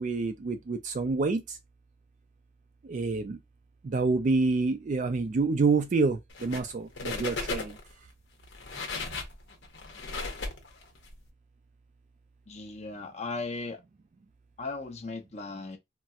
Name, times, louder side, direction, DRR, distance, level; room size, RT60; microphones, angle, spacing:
voice 1, 0.0-1.6 2.8-3.4 3.8-7.8, right 3 dB, 45° right, 0.3 m, -27 dB
sound 1, 6.3-6.7 7.0-7.9 8.4-11.1, left 3 dB, 85° left, 0.9 m, -36 dB
voice 2, 12.5-13.8 14.6-15.8, left 3 dB, 35° left, 0.7 m, -37 dB
4.1 x 2.0 x 2.3 m
head